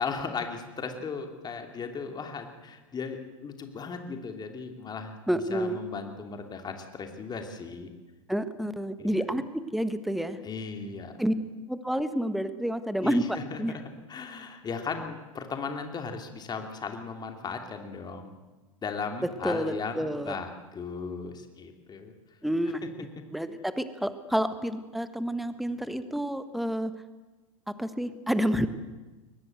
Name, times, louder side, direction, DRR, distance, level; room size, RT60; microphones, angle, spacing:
voice 1, 0.0-5.2 5.5-7.9 9.0-9.2 10.4-11.1 13.0-13.6 14.1-18.3 18.8-22.1, left 5 dB, 25° left, 5 dB, 2.9 m, -36 dB
voice 2, 5.3-5.8 8.3-10.4 11.2-11.3 11.7-13.8 19.4-20.4 22.4-26.9 27.7-28.7, equal, ahead, 11 dB, 1.5 m, -29 dB
22.5 x 19.5 x 8.0 m, 1.2 s
hypercardioid pair, 90°, 17 cm